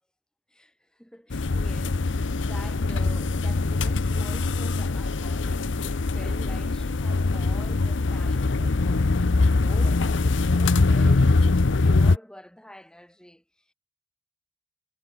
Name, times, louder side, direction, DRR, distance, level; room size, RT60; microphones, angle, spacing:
voice 1, 0.5-13.7, equal, 5° left, 4.1 m, -47 dB
sound 1, 1.3-12.2, left 3 dB, 65° left, 0.7 m, -23 dB
head